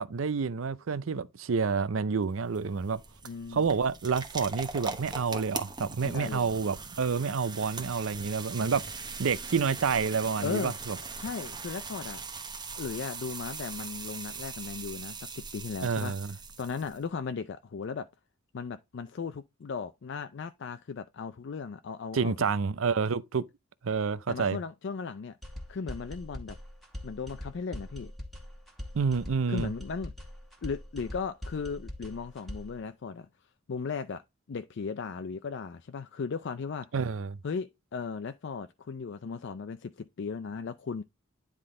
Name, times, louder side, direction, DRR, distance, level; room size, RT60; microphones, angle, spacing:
voice 1, 0.0-3.0 3.5-11.0 15.8-16.3 22.1-23.4 23.8-24.6 28.9-29.7 36.9-37.4, right 5 dB, 80° right, 0.5 m, -29 dB
sound 1, 2.2-17.0, right 4 dB, 20° right, 1.0 m, -41 dB
voice 2, 3.2-3.7 6.0-6.5 10.4-10.7 11.2-12.2 12.7-16.1 16.6-18.1 18.5-22.3 24.3-25.4 25.7-26.6 27.0-28.1 29.5-30.1 30.6-33.3 33.7-34.2 34.5-36.9 37.4-41.0, left 5 dB, 60° left, 0.4 m, -36 dB
sound 2, 25.4-32.8, left 1 dB, ahead, 1.7 m, -42 dB
9.9 x 3.7 x 3.7 m
head